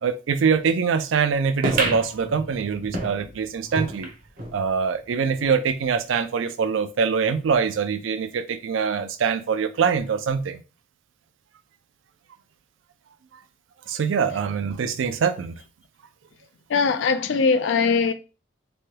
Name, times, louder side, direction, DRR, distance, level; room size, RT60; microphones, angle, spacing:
voice 1, 0.0-4.1 4.5-10.6 13.9-15.6, right 6 dB, 80° right, 0.4 m, -24 dB
sound 1, 1.6-4.6 5.0-5.1 5.3-5.4 6.2-6.3, right 1 dB, 45° right, 0.7 m, -30 dB
voice 2, 16.7-18.1, left 5 dB, 70° left, 0.4 m, -21 dB
3.2 x 2.2 x 2.8 m
head